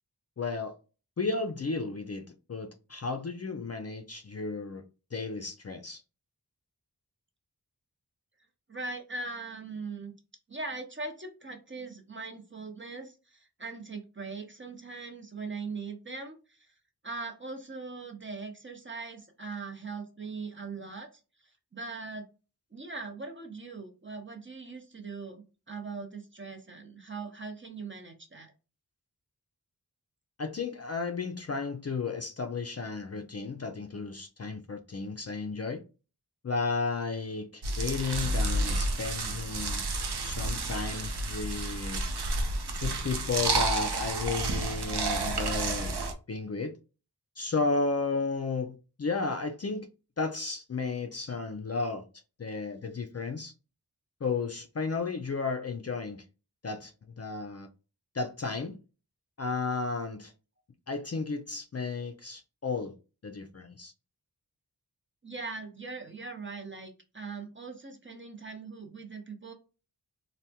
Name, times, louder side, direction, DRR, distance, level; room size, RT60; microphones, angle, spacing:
voice 1, 0.4-0.7 1.2-4.8 5.1-6.0 30.4-35.8 36.4-39.9 40.2-42.0 42.8-45.9 46.3-46.7 47.4-49.9 50.2-52.0 52.4-53.5 54.2-56.2 56.6-57.7 58.1-58.8 59.4-60.3 60.9-62.9 63.2-63.9, left 4 dB, 40° left, 0.4 m, -33 dB
voice 2, 8.7-10.1 10.5-16.7 17.0-21.1 21.7-22.3 22.7-28.5 65.2-69.5, right 4 dB, 30° right, 0.7 m, -40 dB
sound 1, 37.6-46.1, right 2 dB, 80° right, 0.6 m, -30 dB
3.4 x 2.2 x 2.7 m
wide cardioid pair, 50°, 39 cm